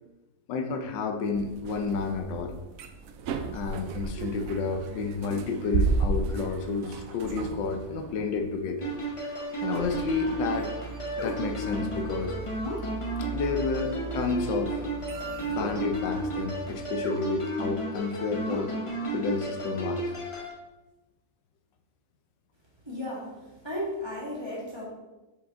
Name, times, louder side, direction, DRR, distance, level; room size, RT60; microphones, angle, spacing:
voice 1, 0.5-2.6 3.5-8.9 9.6-10.7 11.2-12.3 13.3-14.9 15.5-18.7 19.1-20.1, left 4 dB, 80° left, 6 dB, 1.4 m, -30 dB
sound 1, 1.3-16.8, right 4 dB, 75° right, 0.8 m, -35 dB
sound 2, 8.8-20.5, right 1 dB, 35° left, 0.5 m, -33 dB
voice 2, 22.9-23.3 23.6-24.8, left 1 dB, 15° right, -6 dB, 1.6 m, -34 dB
6.7 x 5.0 x 3.7 m, 1.1 s
omnidirectional pair, 2.0 m